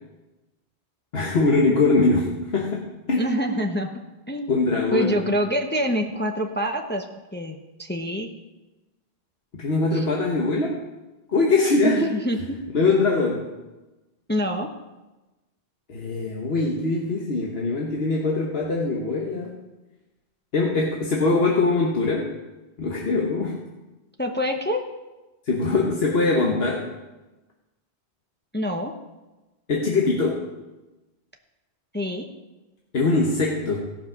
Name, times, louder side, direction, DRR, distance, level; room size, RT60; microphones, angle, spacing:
voice 1, 1.1-3.3 4.5-5.2 9.5-10.8 11.3-12.2 12.7-13.5 15.9-19.5 20.5-22.3 22.8-23.6 25.5-26.9 29.7-30.4 32.9-33.9, left 3 dB, 70° left, -1 dB, 1.4 m, -22 dB
voice 2, 3.1-3.9 4.3-4.6 4.9-7.0 7.3-8.3 9.9-10.0 11.8-12.6 14.3-14.7 24.2-24.8 28.5-28.9 31.9-32.3, equal, 10° left, 3 dB, 0.8 m, -26 dB
16.5 x 5.9 x 5.9 m, 1.1 s
omnidirectional pair, 1.1 m